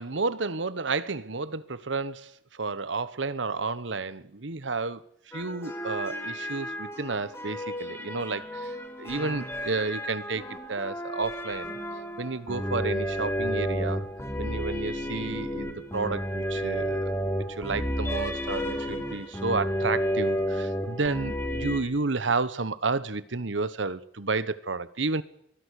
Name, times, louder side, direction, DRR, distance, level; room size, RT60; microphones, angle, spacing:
voice 1, 0.0-5.0 5.3-10.4 10.7-11.8 12.2-14.1 14.4-17.2 17.5-25.2, right 3 dB, 80° right, 1.2 m, -31 dB
sound 1, 5.3-21.8, equal, 15° left, 3.6 m, -32 dB
23.5 x 16.5 x 8.3 m
head